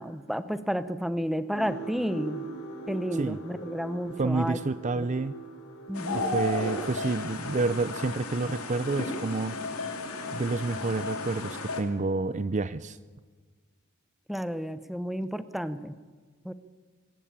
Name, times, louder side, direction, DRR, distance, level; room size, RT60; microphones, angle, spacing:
voice 1, 0.0-2.5 2.9-4.6 5.0-5.1 5.9-6.4 14.3-15.9 16.4-16.5, equal, ahead, 12 dB, 0.9 m, -31 dB
sound 1, 1.5-11.5 11.8-12.1 12.7-12.8, right 3 dB, 65° left, 7.1 m, -44 dB
voice 2, 4.2-5.3 6.1-9.6 10.3-13.0, right 3 dB, 35° right, 15 dB, 0.6 m, -29 dB
sound 2, 6.0-11.8, left 2 dB, 80° left, 2.9 m, -34 dB
25.5 x 13.0 x 8.9 m, 1.5 s
head